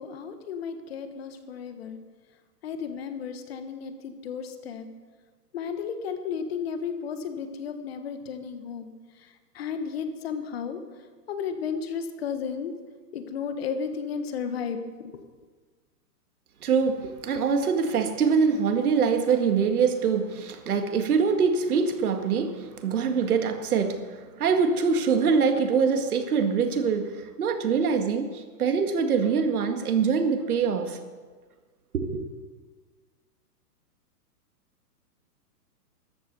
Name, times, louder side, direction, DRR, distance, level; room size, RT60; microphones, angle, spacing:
voice 1, 0.0-2.0 2.6-4.9 5.5-8.9 9.2-10.8 11.3-12.7 13.1-15.2, left 6 dB, 40° left, 9 dB, 1.3 m, -33 dB
voice 2, 16.6-31.0 31.9-32.2, right 5 dB, 65° right, 6 dB, 2.1 m, -24 dB
13.5 x 11.5 x 6.9 m, 1.4 s
hypercardioid pair, 165°, 47 cm